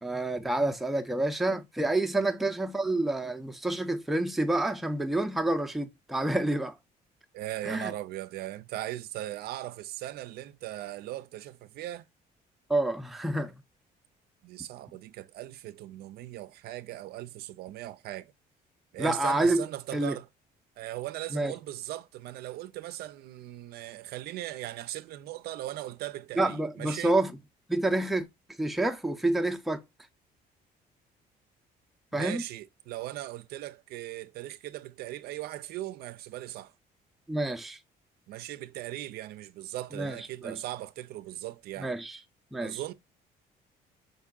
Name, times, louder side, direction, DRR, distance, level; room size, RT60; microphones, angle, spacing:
voice 1, 0.0-6.7 7.7-7.9 12.7-13.6 19.0-19.6 19.9-20.2 21.3-21.5 26.4-27.4 27.7-28.3 28.6-29.8 32.1-32.4 37.3-37.8 39.9-40.2 40.4-40.6 41.8-42.2 42.5-42.8, right 2 dB, ahead, 0.4 m, -28 dB
voice 2, 7.3-12.0 14.4-18.3 18.9-20.3 20.8-27.2 32.1-36.7 38.3-41.9 42.6-42.9, right 14 dB, 70° right, 0.4 m, -39 dB
5.2 x 3.5 x 2.2 m
cardioid pair, 110°, 17 cm